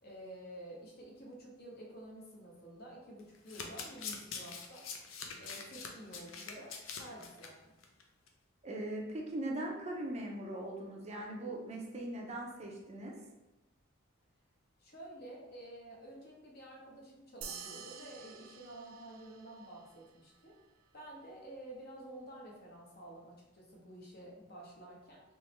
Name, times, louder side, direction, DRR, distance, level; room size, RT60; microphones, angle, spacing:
voice 1, 0.0-4.9 5.4-7.8 14.8-20.6 20.9-25.2, right 1 dB, 50° left, -2 dB, 0.9 m, -50 dB
Domestic sounds home sounds, 3.2-7.5 7.8-8.0 8.3-8.4, left 5 dB, 70° left, 0.5 m, -44 dB
voice 2, 8.6-13.1, right 1 dB, 30° right, 0 dB, 0.5 m, -40 dB
sound 1, 17.4-20.2, right 7 dB, 85° right, 0.4 m, -49 dB
3.5 x 3.0 x 3.0 m, 0.98 s
head